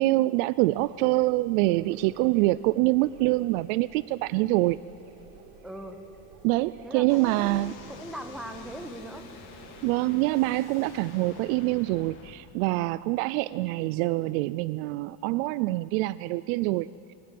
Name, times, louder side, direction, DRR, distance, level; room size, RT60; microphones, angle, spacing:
voice 1, 0.0-4.8 6.4-7.8 9.8-17.1, right 19 dB, 60° right, 18 dB, 0.5 m, -25 dB
sound 1, 0.7-10.1, right 6 dB, 90° right, 7.9 m, -51 dB
voice 2, 5.6-6.0 6.8-9.2, equal, ahead, 5 dB, 1.3 m, -40 dB
sound 2, 7.1-12.3, left 5 dB, 40° left, 3.2 m, -48 dB
Sliding door, 7.1-12.3, right 4 dB, 40° right, 3.9 m, -60 dB
27.0 x 23.5 x 7.6 m, 2.8 s
cardioid pair, 170°, 49 cm